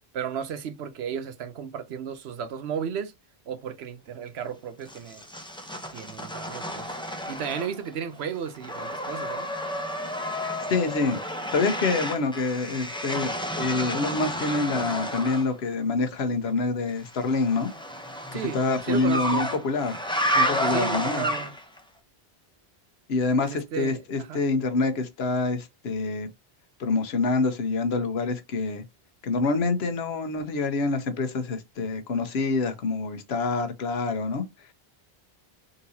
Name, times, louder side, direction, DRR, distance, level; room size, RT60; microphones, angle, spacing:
voice 1, 0.1-3.1 3.5-5.2 5.9-7.0 7.3-9.5 18.3-18.6 18.8-19.5 20.7-21.5 23.4-24.4, right 7 dB, 85° right, 1.0 m, -34 dB
sound 1, 4.9-7.9 8.2-15.5 17.1-21.8, equal, 5° left, 0.6 m, -31 dB
voice 2, 10.7-11.2 11.5-17.7 18.5-20.0 20.3-21.3 23.1-26.3 26.8-28.8 29.2-34.4, left 3 dB, 80° left, 1.0 m, -26 dB
3.9 x 3.8 x 2.7 m
omnidirectional pair, 1.0 m